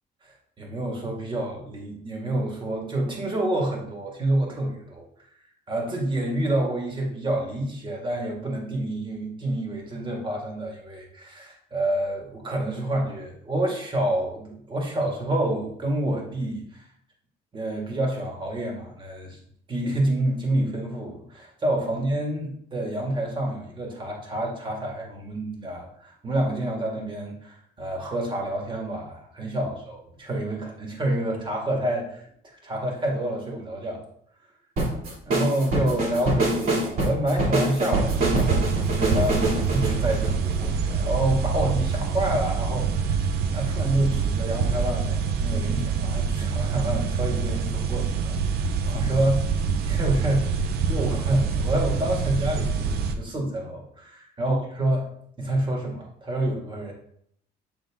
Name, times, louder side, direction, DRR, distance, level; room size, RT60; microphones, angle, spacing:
voice 1, 0.2-5.1 5.7-16.9 17.5-19.4 19.7-34.0 35.3-49.5 49.8-55.1 55.4-56.9, right 1 dB, 30° right, 0 dB, 2.2 m, -28 dB
sound 1, 34.8-41.1, right 1 dB, 55° right, 3.0 m, -25 dB
sound 2, 37.9-53.1, right 5 dB, 70° right, 0.7 m, -26 dB
9.0 x 3.9 x 3.7 m, 0.67 s
cardioid pair, 110°, 17 cm